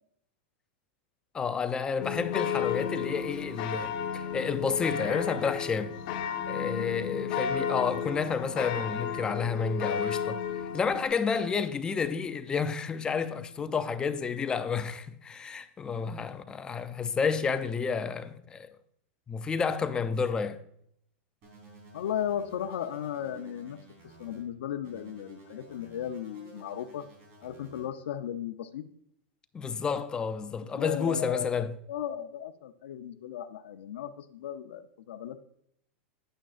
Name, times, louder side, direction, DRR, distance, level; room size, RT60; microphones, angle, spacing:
voice 1, 1.3-6.0 6.5-10.4 10.7-18.7 19.3-20.6 29.5-31.7, left 5 dB, 15° left, 0.4 m, -30 dB
sound 1, 2.0-11.0, left 7 dB, 50° left, 0.9 m, -33 dB
sound 2, 21.4-24.4 24.8-27.9, right 2 dB, 40° right, 3.7 m, -53 dB
voice 2, 21.9-23.8 24.0-27.1 27.4-28.8 30.8-35.4, left 10 dB, 90° left, 0.6 m, -36 dB
10.0 x 8.8 x 2.4 m
supercardioid pair, 155°, 6 cm